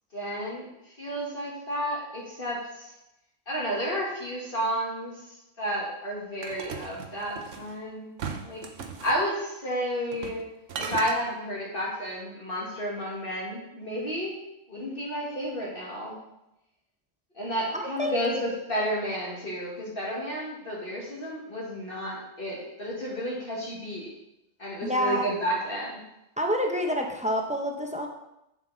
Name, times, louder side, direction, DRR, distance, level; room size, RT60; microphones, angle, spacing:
voice 1, 0.1-0.7 1.0-2.9 3.5-5.1 5.6-8.1 8.4-8.6 9.0-10.4 10.8-14.3 14.7-16.2 17.4-24.1 24.6-25.9, equal, 45° left, -5 dB, 2.1 m, -31 dB
sound 1, 6.4-7.7 8.2-9.2 10.1-10.4 10.7-11.2, right 5 dB, 70° right, 1.1 m, -36 dB
voice 2, 17.7-18.2 24.8-25.3 26.4-28.1, equal, 5° right, 2 dB, 0.7 m, -28 dB
7.7 x 7.3 x 4.0 m, 0.89 s
omnidirectional pair, 1.3 m